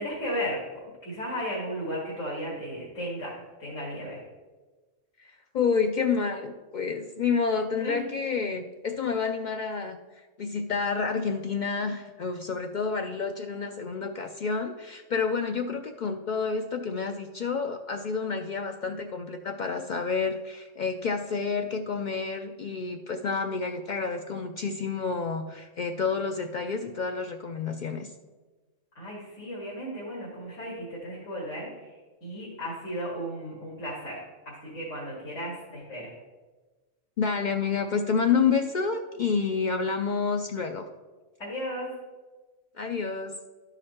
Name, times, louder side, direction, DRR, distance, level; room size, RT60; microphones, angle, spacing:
voice 1, 0.0-3.3 3.6-4.2 7.8-8.0 28.9-36.1 41.4-41.9, equal, 85° left, -6 dB, 2.4 m, -35 dB
voice 2, 5.2-10.0 10.4-28.1 37.2-40.9 42.8-43.3, left 5 dB, 65° left, 5 dB, 0.4 m, -29 dB
12.0 x 5.0 x 4.2 m, 1.3 s
omnidirectional pair, 1.3 m